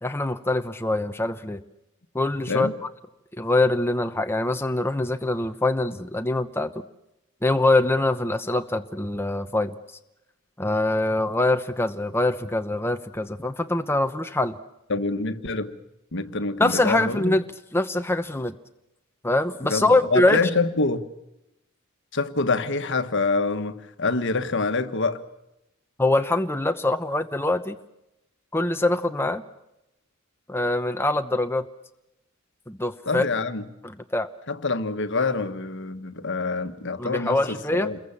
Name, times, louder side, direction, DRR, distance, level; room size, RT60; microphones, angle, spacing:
voice 1, 0.0-1.6 2.1-2.9 3.4-6.8 7.4-9.7 10.6-14.6 16.6-17.4 17.7-18.5 19.2-20.4 26.0-27.8 28.5-29.4 30.5-31.7 32.7-33.2 33.8-34.3 37.0-37.9, left 2 dB, 10° left, 0.9 m, -24 dB
voice 2, 14.9-15.7 16.1-17.3 19.6-21.0 22.1-25.2 33.0-33.6 34.5-38.0, left 3 dB, 60° left, 1.5 m, -26 dB
28.5 x 22.0 x 7.3 m
head